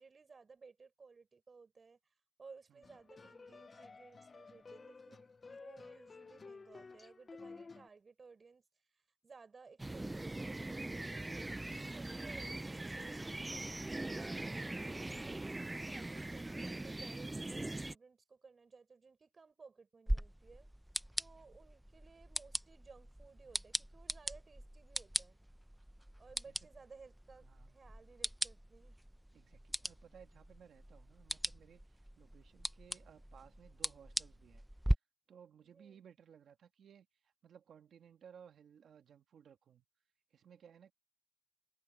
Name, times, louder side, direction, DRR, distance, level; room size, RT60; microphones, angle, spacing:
voice 1, 0.0-2.0 2.4-8.6 9.2-20.7 21.2-25.4 26.2-29.0 35.6-36.0, right 4 dB, 60° right, 7.0 m, -59 dB
sound 1, 2.8-7.9, left 4 dB, 55° left, 0.6 m, -53 dB
sound 2, 9.8-18.0, right 2 dB, 25° right, 0.3 m, -41 dB
sound 3, 20.1-34.9, equal, 5° right, 0.8 m, -41 dB
voice 2, 29.3-34.6 35.3-39.9 40.3-40.9, right 8 dB, 85° right, 1.8 m, -60 dB
cardioid pair, 45°, 0 cm